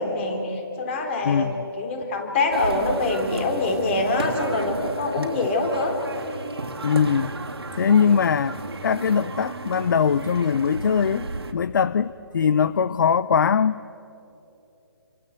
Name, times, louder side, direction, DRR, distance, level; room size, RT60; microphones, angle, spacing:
voice 1, 0.0-1.5 1.8-6.0, left 2 dB, 30° left, 4 dB, 3.7 m, -25 dB
voice 2, 1.2-1.6 5.2-5.3 6.8-7.3 7.7-11.3 11.5-13.8, left 6 dB, 50° left, 16 dB, 0.6 m, -21 dB
sound 1, 2.5-11.5, right 3 dB, 85° right, 3.0 m, -33 dB
28.5 x 25.0 x 8.1 m, 3.0 s
figure-of-eight pair, 155°, 13 cm